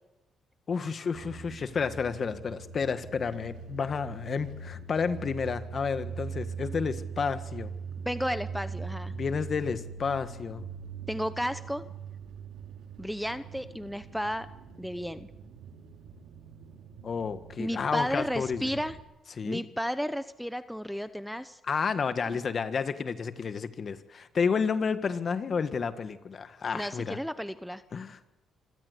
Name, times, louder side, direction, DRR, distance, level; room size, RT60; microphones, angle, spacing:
voice 1, 0.7-7.7 9.1-10.6 17.0-18.7 19.4-19.6 21.6-27.2 27.9-28.3, left 5 dB, 45° left, 10 dB, 1.7 m, -31 dB
sound 1, 1.1-19.0, right 5 dB, 85° right, 3.1 m, -42 dB
voice 2, 8.0-9.1 11.1-11.8 13.0-14.5 14.8-15.3 17.6-19.0 19.4-21.6 22.3-22.4 26.7-27.8, equal, ahead, 12 dB, 0.9 m, -33 dB
26.0 x 16.5 x 8.3 m, 1.0 s
cardioid pair, 90°, 0 cm